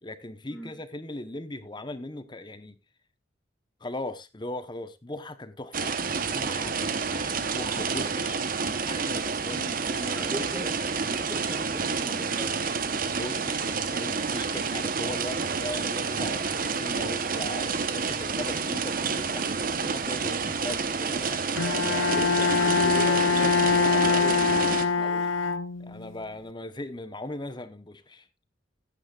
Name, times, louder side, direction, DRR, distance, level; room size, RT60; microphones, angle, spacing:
voice 1, 0.0-2.8 3.8-10.1 10.6-11.0 13.1-21.4 25.8-28.3, left 1 dB, 20° left, 1.0 m, -39 dB
sound 1, 5.7-24.9, right 5 dB, 45° right, 1.0 m, -29 dB
voice 2, 10.1-10.8 11.1-12.8 21.6-25.3, equal, ahead, 1.7 m, -38 dB
Bowed string instrument, 21.6-26.1, left 4 dB, 70° left, 0.6 m, -24 dB
15.0 x 9.9 x 2.4 m
head